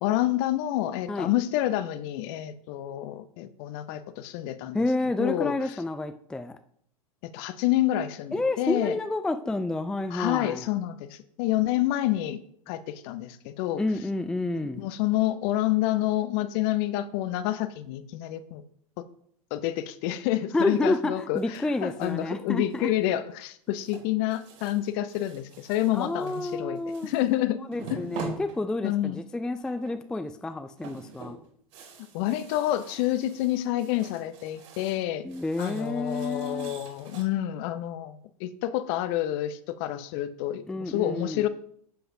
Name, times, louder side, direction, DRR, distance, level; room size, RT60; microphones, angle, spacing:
voice 1, 0.0-4.8 5.2-5.5 7.2-8.9 10.1-12.4 12.7-13.8 14.5-18.6 19.5-27.6 27.9-28.0 28.8-29.2 32.1-35.2 35.6-41.5, left 13 dB, 40° left, 13 dB, 0.7 m, -28 dB
voice 2, 4.7-6.6 8.3-10.7 13.8-14.9 20.5-22.9 25.9-27.1 27.7-31.4 35.2-36.7 40.7-41.4, left 2 dB, 5° left, 10 dB, 0.4 m, -29 dB
sound 1, 21.3-22.3 22.7-23.1 23.7-27.4 27.7-29.1 29.6-30.2 30.5-35.0 35.3-37.2, right 4 dB, 55° right, 2.7 m, -45 dB
11.0 x 7.7 x 2.7 m, 0.64 s
figure-of-eight pair, 95°, 19 cm